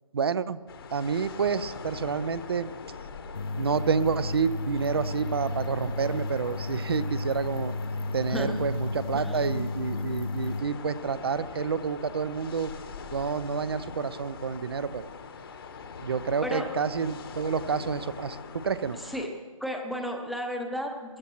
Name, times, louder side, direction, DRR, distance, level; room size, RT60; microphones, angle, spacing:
voice 1, 0.1-0.6 0.9-2.7 3.6-7.7 8.1-12.7 13.1-15.1 16.0-19.0, right 6 dB, 45° right, 16 dB, 0.6 m, -29 dB
sound 1, 0.7-19.3, left 5 dB, 40° left, 1.2 m, -42 dB
sound 2, 3.3-10.6, left 2 dB, 75° left, 0.9 m, -33 dB
voice 2, 8.3-8.6 9.2-9.4 16.4-16.7 18.9-19.3 19.6-21.2, equal, ahead, 2 dB, 0.8 m, -33 dB
23.0 x 15.0 x 3.1 m, 1.5 s
figure-of-eight pair, 150°, 18 cm